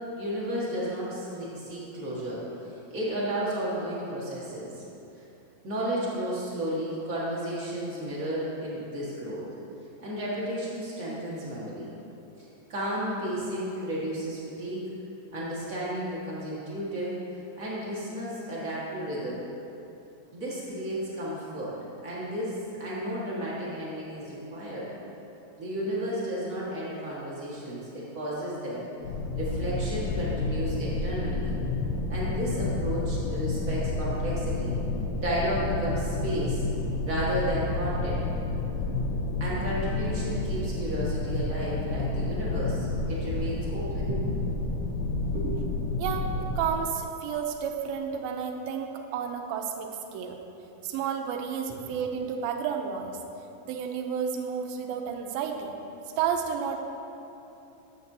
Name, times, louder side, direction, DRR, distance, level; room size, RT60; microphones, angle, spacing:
voice 1, 0.1-4.8 5.2-5.3 5.6-9.5 10.0-11.9 12.4-14.8 15.3-17.1 17.6-19.4 20.3-21.8 22.0-24.9 25.6-28.9 29.4-31.5 32.1-34.7 35.2-36.7 37.0-38.3 39.4-44.2 45.2-45.6 51.7-51.8, equal, 40° right, -7 dB, 1.2 m, -33 dB
sound 1, 29.0-46.7, left 2 dB, 75° left, 2.1 m, -30 dB
voice 2, 46.0-46.3 46.6-50.4 50.8-53.2 53.6-55.8 56.2-56.8, right 7 dB, 85° right, 4 dB, 2.4 m, -31 dB
12.5 x 8.7 x 2.7 m, 2.9 s
omnidirectional pair, 4.2 m